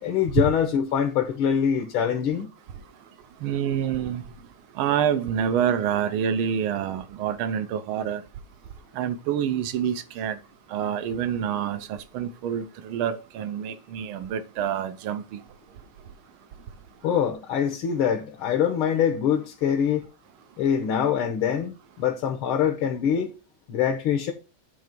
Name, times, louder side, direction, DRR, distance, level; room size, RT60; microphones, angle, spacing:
voice 1, 0.0-2.5 17.0-20.1 20.6-23.4 23.7-24.3, left 8 dB, 80° left, 1.8 m, -24 dB
voice 2, 3.4-4.2 4.8-8.2 9.0-10.4 10.7-15.4, right 8 dB, 80° right, 1.6 m, -27 dB
9.0 x 3.3 x 5.2 m
omnidirectional pair, 2.3 m